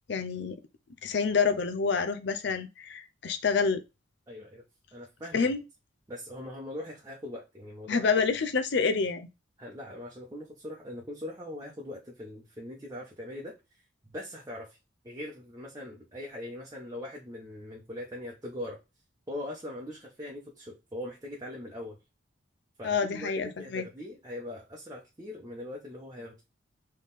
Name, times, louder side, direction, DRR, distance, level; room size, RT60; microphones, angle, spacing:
voice 1, 0.1-0.6 1.0-3.8 5.3-5.6 7.9-9.3 22.8-23.8, left 5 dB, 60° left, 0.5 m, -27 dB
voice 2, 4.3-4.6 4.9-5.5 6.1-8.1 9.6-13.5 14.1-14.8 15.0-18.8 19.3-22.0 22.8-26.4, left 1 dB, 20° right, 0.9 m, -41 dB
3.7 x 3.2 x 3.9 m
head